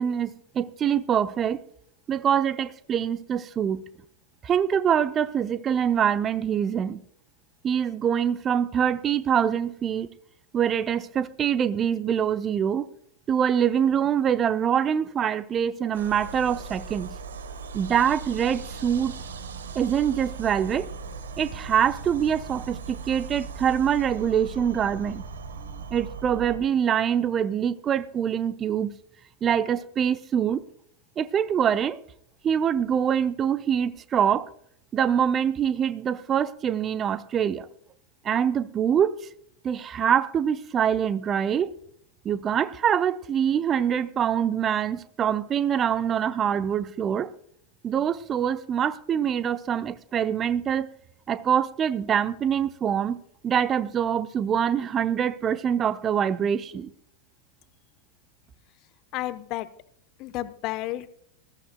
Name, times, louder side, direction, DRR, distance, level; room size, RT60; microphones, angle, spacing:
voice 1, 0.0-1.6 2.1-3.8 4.4-7.0 7.6-10.1 10.5-12.9 13.3-17.1 17.7-19.1 19.7-20.9 21.4-25.2 25.9-28.9 29.4-30.6 31.2-32.0 32.4-34.5 34.9-37.7 38.2-39.1 39.6-41.7 42.2-47.3 47.8-50.9 51.3-56.9, right 8 dB, 25° right, 0.8 m, -24 dB
sound 1, 15.9-26.6, right 4 dB, 65° right, 1.4 m, -38 dB
voice 2, 59.1-59.7 60.2-61.1, left 16 dB, 40° left, 0.8 m, -31 dB
20.5 x 14.5 x 2.2 m
figure-of-eight pair, 90°, 0 cm